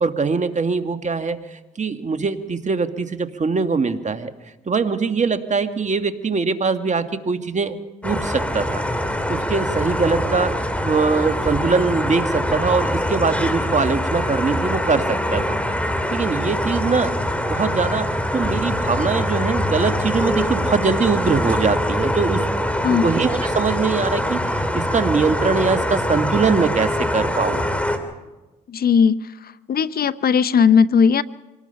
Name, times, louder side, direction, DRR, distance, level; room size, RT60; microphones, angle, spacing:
voice 1, 0.0-4.3 4.7-8.8 9.3-15.6 16.1-17.2 17.5-22.4 22.9-27.7, right 4 dB, 40° right, 9 dB, 1.7 m, -22 dB
sound 1, 8.0-28.0, left 1 dB, 5° left, 3.2 m, -23 dB
voice 2, 28.7-29.2 29.7-31.2, left 6 dB, 55° left, 16 dB, 0.7 m, -17 dB
25.5 x 18.5 x 5.8 m, 1.1 s
supercardioid pair, 60°, 19 cm